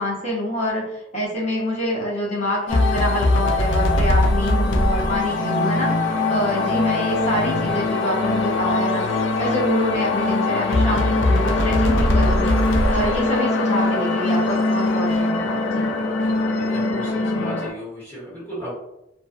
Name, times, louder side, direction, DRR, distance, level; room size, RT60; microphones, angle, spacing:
voice 1, 0.0-9.1 9.4-15.9, left 1 dB, 40° left, -5 dB, 0.7 m, -26 dB
sound 1, 2.7-17.7, left 2 dB, 85° left, 0.4 m, -21 dB
voice 2, 16.2-18.7, equal, 10° left, -11 dB, 1.2 m, -35 dB
2.5 x 2.3 x 2.4 m, 0.83 s
head